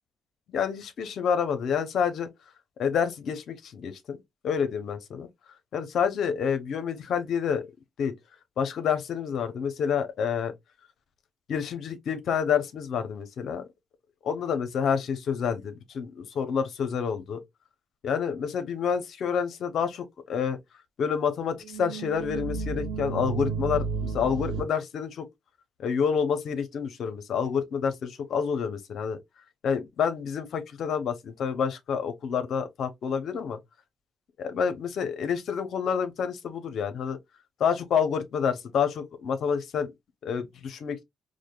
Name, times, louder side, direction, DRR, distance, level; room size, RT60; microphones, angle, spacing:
voice 1, 0.5-2.3 2.8-4.2 4.4-5.3 5.7-7.7 8.0-8.1 8.6-10.5 11.5-13.6 14.2-17.4 18.0-20.6 21.0-25.3 25.8-29.2 29.6-33.6 34.4-37.2 37.6-39.9 40.2-41.0, left 7 dB, 65° left, 0.7 m, -28 dB
sound 1, 21.6-24.6, right 5 dB, 90° right, 1.0 m, -32 dB
4.9 x 2.2 x 2.3 m
cardioid pair, 90°, 0 cm